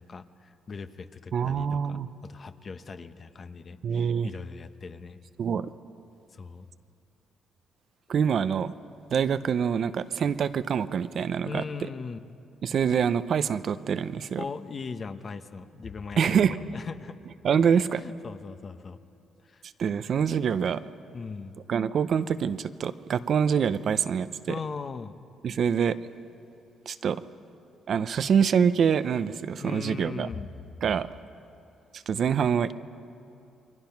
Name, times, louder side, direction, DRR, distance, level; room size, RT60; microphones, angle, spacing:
voice 1, 0.0-5.2 6.3-6.7 11.4-12.2 14.4-17.2 17.7-19.0 19.4-19.7 21.1-21.6 24.5-25.1 29.6-30.5, left 5 dB, 40° left, 9 dB, 1.1 m, -39 dB
voice 2, 1.3-2.1 3.8-4.3 5.4-5.7 8.1-8.7 9.1-11.6 12.6-14.4 16.2-16.6 17.4-18.0 19.8-20.8 21.7-24.5 25.4-26.0 26.9-27.2 27.9-30.3 30.8-31.1 31.9-32.7, right 7 dB, 60° right, 13 dB, 0.7 m, -25 dB
28.5 x 22.5 x 5.9 m, 2.7 s
cardioid pair, 90°, 0 cm